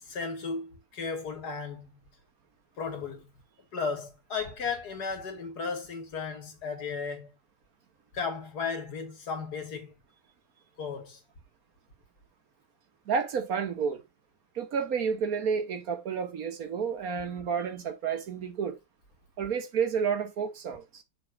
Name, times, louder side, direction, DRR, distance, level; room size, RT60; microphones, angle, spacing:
voice 1, 0.0-1.9 2.8-3.3 3.7-7.3 8.1-9.9 10.8-11.2, left 5 dB, 70° left, 2.2 m, -35 dB
voice 2, 13.1-14.0 14.6-18.8 19.4-21.0, right 6 dB, 60° right, 1.4 m, -30 dB
6.8 x 3.6 x 4.9 m
omnidirectional pair, 1.8 m